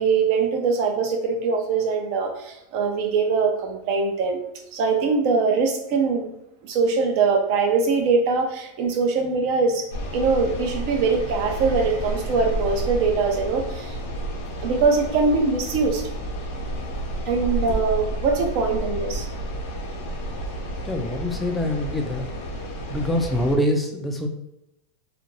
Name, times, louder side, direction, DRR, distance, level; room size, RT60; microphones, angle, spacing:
voice 1, 0.0-4.4 4.7-6.3 6.6-9.9 10.1-14.0 14.6-16.0 17.3-19.3, right 4 dB, 55° right, 3 dB, 0.6 m, -22 dB
sound 1, 9.9-23.6, right 1 dB, 80° left, 0.7 m, -31 dB
voice 2, 20.8-22.2 22.9-24.3, left 1 dB, 10° left, 3 dB, 0.3 m, -24 dB
2.5 x 2.2 x 3.0 m, 0.87 s
supercardioid pair, 140°, 0 cm